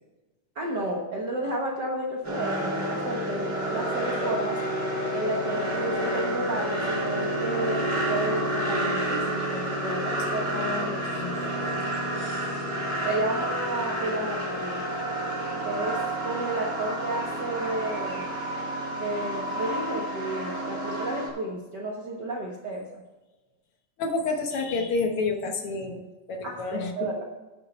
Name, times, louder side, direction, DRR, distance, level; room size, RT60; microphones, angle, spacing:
voice 1, 0.5-4.6 5.1-10.5 13.0-14.8 15.6-18.2 19.0-23.0 26.4-27.3, right 1 dB, 75° right, 0 dB, 0.9 m, -32 dB
sound 1, 2.2-21.3, right 1 dB, 25° right, 3.9 m, -29 dB
voice 2, 10.5-11.8 12.2-12.6 24.0-26.0 26.3-27.1, left 3 dB, 60° left, 4 dB, 1.6 m, -30 dB
12.0 x 8.7 x 4.3 m, 1.2 s
omnidirectional pair, 3.8 m